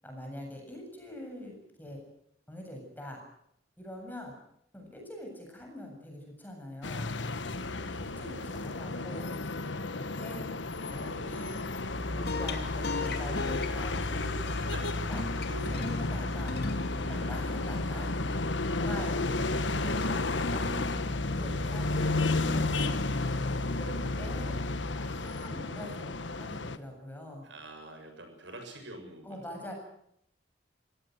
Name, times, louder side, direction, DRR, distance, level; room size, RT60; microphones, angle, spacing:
voice 1, 0.0-2.0 2.5-3.2 3.8-4.3 4.7-7.1 7.9-9.3 9.9-10.5 10.9-11.7 12.1-14.4 15.1-16.6 17.1-18.3 18.6-19.3 19.7-23.0 23.7-24.5 25.0-27.5 29.2-29.7, left 1 dB, 10° left, 1 dB, 7.7 m, -44 dB
sound 1, 6.8-26.8, left 3 dB, 90° left, 1.4 m, -33 dB
sound 2, 11.9-25.5, left 1 dB, 60° left, 2.8 m, -36 dB
voice 2, 14.7-15.1 15.7-15.9 17.0-17.4 27.4-29.7, right 2 dB, 85° right, 4 dB, 7.4 m, -47 dB
27.0 x 16.5 x 8.0 m, 0.73 s
head